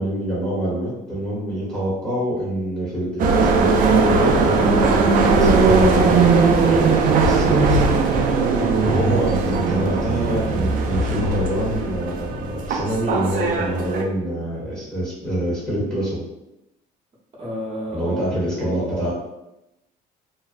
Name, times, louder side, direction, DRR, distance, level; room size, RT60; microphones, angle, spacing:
voice 1, 0.0-6.3 6.7-8.4 8.9-16.2 17.9-19.1, right 1 dB, 5° left, -9 dB, 0.9 m, -25 dB
sound 1, 3.2-14.0, right 4 dB, 55° right, 0.4 m, -18 dB
voice 2, 8.3-8.7 17.4-18.3 18.6-19.1, equal, 35° right, -4 dB, 0.8 m, -31 dB
2.6 x 2.0 x 2.4 m, 0.90 s
cardioid pair, 110°, 17 cm